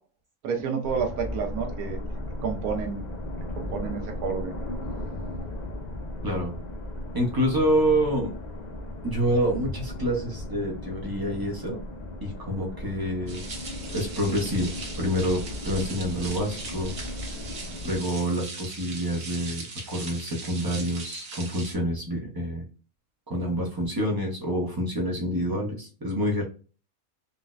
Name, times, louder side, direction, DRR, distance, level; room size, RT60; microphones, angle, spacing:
voice 1, 0.4-2.0 2.4-3.1 3.6-4.5, right 6 dB, 85° right, 3 dB, 1.1 m, -30 dB
sound 1, 0.8-18.0, left 1 dB, 70° left, 0.4 m, -36 dB
voice 2, 7.1-8.3 9.0-11.8 12.2-13.4 13.9-16.9 17.8-22.7 23.3-26.4, equal, 35° right, -1 dB, 0.3 m, -27 dB
sound 2, 13.3-21.7, right 3 dB, 55° right, 1.0 m, -40 dB
3.9 x 2.0 x 2.3 m, 0.36 s
omnidirectional pair, 1.5 m